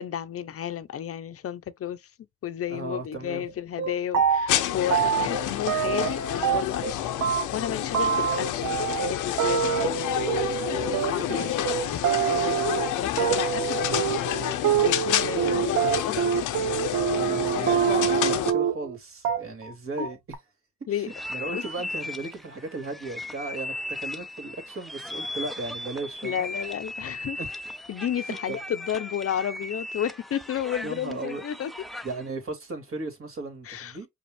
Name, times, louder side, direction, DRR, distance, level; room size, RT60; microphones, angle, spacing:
voice 1, 0.0-2.0 2.4-7.0 7.5-10.6 11.0-14.2 14.8-16.5 20.0-20.1 20.9-21.1 21.5-21.6 26.2-27.4 27.9-31.7 33.6-34.0, left 10 dB, 50° left, 0.7 m, -32 dB
voice 2, 2.7-3.4 5.1-5.3 10.7-11.7 15.2-15.8 17.1-20.2 20.9-26.4 27.4-27.5 28.3-28.6 30.8-31.4 32.0-34.1, right 2 dB, 45° right, 2.2 m, -36 dB
sound 1, 3.4-3.5 3.8-4.6 4.9-6.9 7.2-19.0 19.2-19.7 20.0-20.3, right 9 dB, 85° right, 1.0 m, -26 dB
sound 2, 4.5-18.5, left 11 dB, 90° left, 0.8 m, -29 dB
sound 3, 21.1-32.3, left 1 dB, ahead, 0.5 m, -37 dB
5.2 x 2.4 x 3.4 m
cardioid pair, 90°, 30 cm